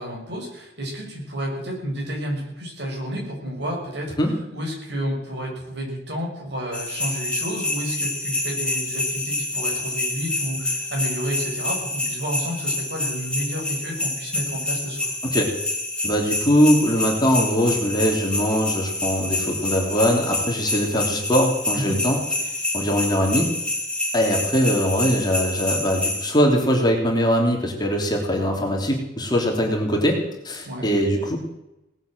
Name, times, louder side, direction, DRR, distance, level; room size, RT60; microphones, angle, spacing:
voice 1, 0.0-4.1 4.5-15.1 21.7-22.0 22.4-22.5 30.7-30.9, equal, 65° right, -1 dB, 6.8 m, -30 dB
sound 1, 6.7-26.3, left 2 dB, 5° left, 3.8 m, -27 dB
voice 2, 16.0-22.2 22.7-23.5 24.1-30.2 30.4-31.4, equal, 25° left, 0 dB, 3.2 m, -21 dB
18.5 x 9.0 x 7.9 m, 0.89 s
head